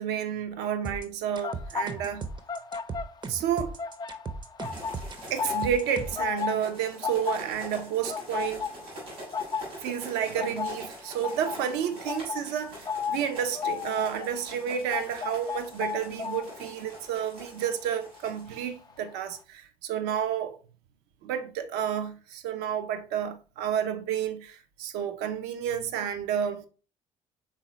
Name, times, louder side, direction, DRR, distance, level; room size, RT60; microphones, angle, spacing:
voice 1, 0.0-2.3 3.3-3.8 5.3-8.7 9.8-20.6 21.2-26.7, right 9 dB, 70° right, 0.6 m, -30 dB
sound 1, 0.8-6.3, right 4 dB, 25° right, 0.6 m, -37 dB
sound 2, 1.3-3.5 3.7-18.6 18.9-19.2, left 6 dB, 25° left, 0.3 m, -35 dB
sound 3, 4.6-18.5, right 1 dB, 85° right, 2.4 m, -45 dB
4.1 x 3.9 x 3.0 m
hypercardioid pair, 50°, 18 cm